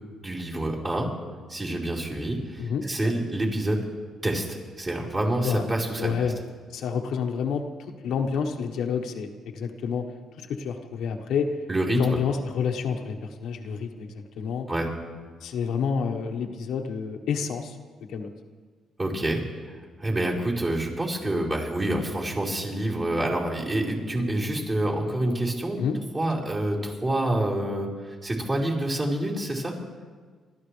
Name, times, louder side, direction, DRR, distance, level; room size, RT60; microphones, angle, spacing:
voice 1, 0.2-1.1 1.5-3.8 4.2-6.1 11.7-12.2 14.7-14.9 19.0-25.9 26.1-29.8, right 1 dB, 30° right, -5 dB, 4.8 m, -27 dB
voice 2, 2.6-3.1 5.4-5.6 6.0-6.4 6.7-7.6 8.0-10.0 10.4-11.5 11.9-14.7 15.4-17.8 18.1-18.3 25.8-26.0 26.3-26.5, left 6 dB, 80° left, 3 dB, 1.3 m, -29 dB
28.0 x 13.5 x 3.4 m, 1.5 s
cardioid pair, 90°, 0 cm